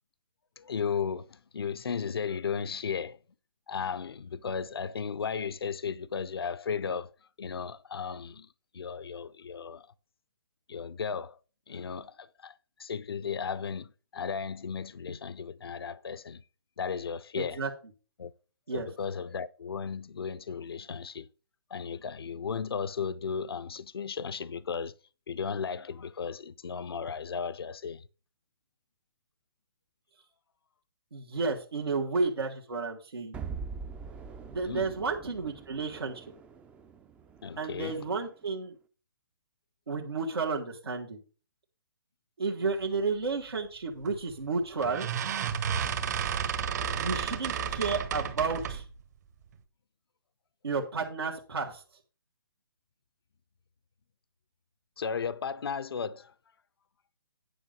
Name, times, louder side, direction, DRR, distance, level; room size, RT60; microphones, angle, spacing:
voice 1, 0.6-3.2 3.7-8.5 8.7-9.9 10.7-11.4 11.7-12.5 12.8-16.4 16.8-17.6 18.2-18.3 18.7-21.3 21.7-24.9 25.3-28.0 34.6-34.9 37.4-38.0 55.0-56.3, left 6 dB, 75° left, 0.6 m, -35 dB
voice 2, 17.4-17.7 18.7-18.9 31.1-33.4 34.5-36.2 37.6-38.8 39.9-41.2 42.4-45.1 46.9-48.8 50.6-51.8, right 4 dB, 80° right, 1.9 m, -32 dB
sound 1, 33.3-38.4, right 5 dB, 10° right, 0.4 m, -44 dB
sound 2, 44.1-44.3 44.8-48.9, right 8 dB, 45° right, 1.3 m, -32 dB
10.0 x 5.4 x 5.2 m
hypercardioid pair, 145°, 13 cm